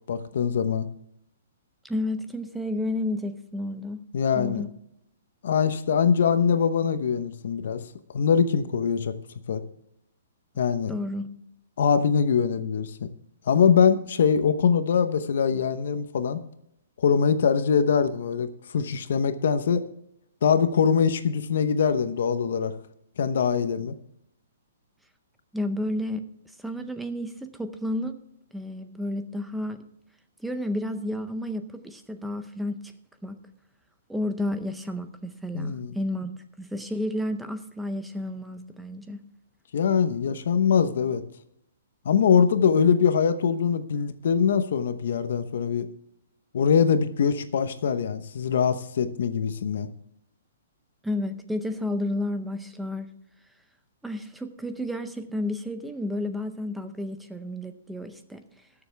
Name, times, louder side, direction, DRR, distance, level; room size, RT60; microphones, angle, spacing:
voice 1, 0.1-0.9 4.1-4.6 5.4-7.8 8.1-9.2 9.5-9.6 10.6-10.9 11.8-13.1 13.5-16.4 17.0-19.8 20.4-22.7 23.2-23.9 35.5-35.9 39.7-41.2 42.0-45.9 46.5-49.9, left 6 dB, 55° left, 10 dB, 0.9 m, -23 dB
voice 2, 1.8-4.0 4.3-4.7 10.9-11.3 25.5-26.2 26.6-28.2 28.5-29.9 30.4-32.8 33.2-33.4 34.1-36.3 36.6-39.2 51.0-53.1 54.0-58.4, left 1 dB, ahead, 8 dB, 0.6 m, -31 dB
19.5 x 7.0 x 3.4 m, 0.74 s
hypercardioid pair, 180°, 0 cm